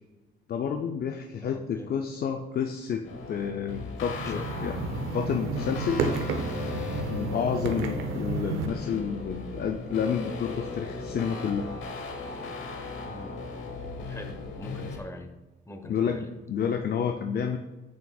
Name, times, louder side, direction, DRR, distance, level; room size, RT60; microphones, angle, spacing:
voice 1, 0.5-4.8 5.1-6.1 7.1-11.6 15.8-17.6, left 7 dB, 50° left, 5 dB, 0.5 m, -30 dB
voice 2, 1.4-1.9 4.2-4.5 7.4-7.6 13.1-13.4 14.0-15.4 15.7-16.3, left 1 dB, 15° left, 6 dB, 0.9 m, -43 dB
sound 1, 3.0-15.0, left 3 dB, 85° left, 1.0 m, -37 dB
sound 2, 4.0-8.7, right 4 dB, 90° right, 0.8 m, -31 dB
7.3 x 5.9 x 2.3 m, 1.1 s
cardioid pair, 90°, 20 cm